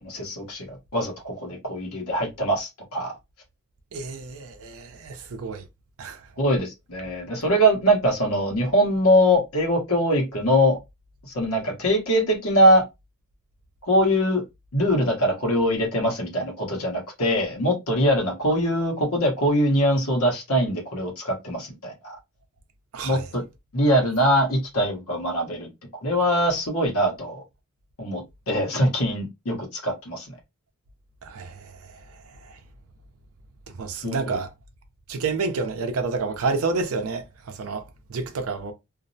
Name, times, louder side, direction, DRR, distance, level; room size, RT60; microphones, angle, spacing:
voice 1, 0.0-3.1 6.4-10.8 11.2-12.8 13.9-14.4 14.7-22.1 23.0-23.4 23.7-25.7 26.0-27.4 28.0-28.2 28.5-30.3 34.0-34.4, equal, 75° left, 1.0 m, -22 dB
voice 2, 3.9-5.6 6.0-6.2 22.9-23.3 31.2-32.6 33.7-34.5 35.1-38.7, right 4 dB, 65° right, 0.5 m, -30 dB
2.5 x 2.0 x 2.6 m
head